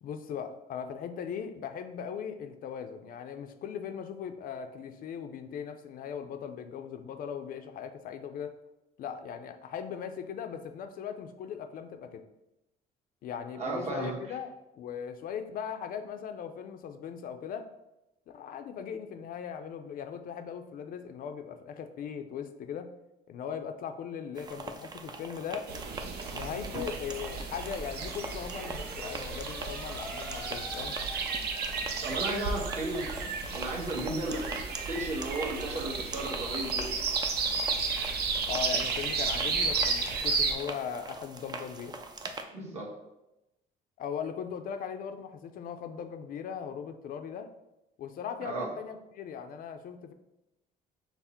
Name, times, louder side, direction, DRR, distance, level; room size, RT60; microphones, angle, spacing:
voice 1, 0.0-8.6 9.0-12.2 13.2-17.6 18.3-22.9 23.3-25.7 26.3-31.0 38.5-42.0 44.0-47.5 48.0-50.1, left 7 dB, 55° left, 7 dB, 0.5 m, -39 dB
voice 2, 13.6-14.4 32.0-33.1 33.5-37.0 42.5-42.9 48.4-48.7, right 2 dB, 40° right, -3 dB, 1.4 m, -34 dB
sound 1, 24.4-42.4, right 3 dB, 25° right, 0.4 m, -43 dB
sound 2, 25.7-40.5, right 4 dB, 70° right, 0.7 m, -33 dB
sound 3, 27.1-32.1, left 2 dB, 5° left, 0.8 m, -46 dB
5.7 x 2.0 x 4.3 m, 0.93 s
cardioid pair, 110°, 17 cm